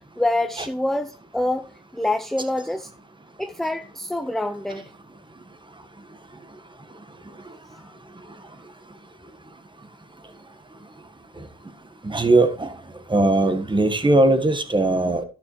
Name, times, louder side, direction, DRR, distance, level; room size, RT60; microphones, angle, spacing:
voice 1, 0.2-1.7 1.9-2.9 3.4-4.8, left 1 dB, ahead, 0.6 m, -26 dB
voice 2, 12.0-12.7 13.1-15.2, right 2 dB, 15° right, 1.4 m, -19 dB
11.5 x 6.9 x 3.1 m
cardioid pair, 90°, 30 cm